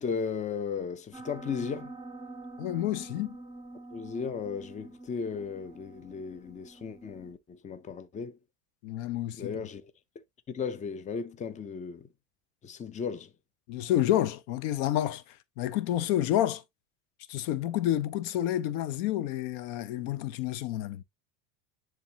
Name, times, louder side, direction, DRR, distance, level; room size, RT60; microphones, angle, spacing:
voice 1, 0.0-2.0 3.9-8.4 9.4-9.9 10.5-12.1 12.6-13.3, left 6 dB, 20° left, 0.6 m, -35 dB
Piano, 1.1-7.3, right 2 dB, 10° right, 1.9 m, -46 dB
voice 2, 2.6-3.4 8.8-9.5 13.7-16.6 17.3-21.0, left 12 dB, 75° left, 0.8 m, -29 dB
10.0 x 3.4 x 2.9 m
supercardioid pair, 130°, 39 cm